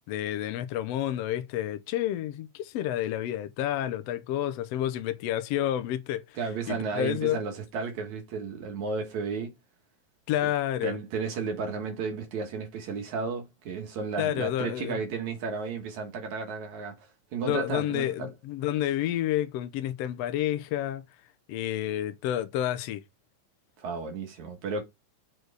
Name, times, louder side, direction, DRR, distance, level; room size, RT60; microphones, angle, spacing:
voice 1, 0.1-6.4 6.7-7.4 10.3-11.0 14.2-15.0 17.4-21.0 21.5-23.0, left 12 dB, 70° left, 1.7 m, -29 dB
voice 2, 6.4-9.5 10.4-10.5 10.8-18.3 23.8-24.8, right 4 dB, 75° right, 3.0 m, -33 dB
6.5 x 4.6 x 4.8 m
omnidirectional pair, 3.4 m